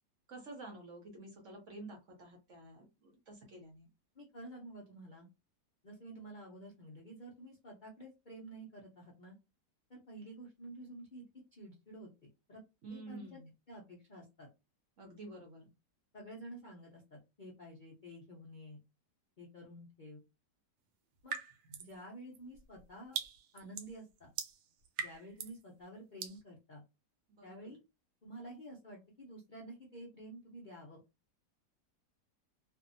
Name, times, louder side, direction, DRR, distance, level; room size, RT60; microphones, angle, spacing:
voice 1, 0.3-3.9 12.8-13.5 15.0-15.7 27.3-27.7, right 2 dB, 60° right, 2 dB, 0.9 m, -50 dB
voice 2, 4.1-5.3 5.8-9.4 9.9-11.2 11.5-12.6 12.9-13.4 13.7-14.5 16.1-18.8 19.4-20.2 21.2-21.4 21.8-23.2 23.5-24.3 25.0-26.8 27.4-27.8 28.2-31.0, right 1 dB, 55° left, -3 dB, 0.5 m, -50 dB
sound 1, 21.3-22.0 22.3-25.6 26.2-26.4, right 7 dB, 75° right, 1.1 m, -42 dB
2.6 x 2.5 x 2.6 m, 0.26 s
omnidirectional pair, 1.8 m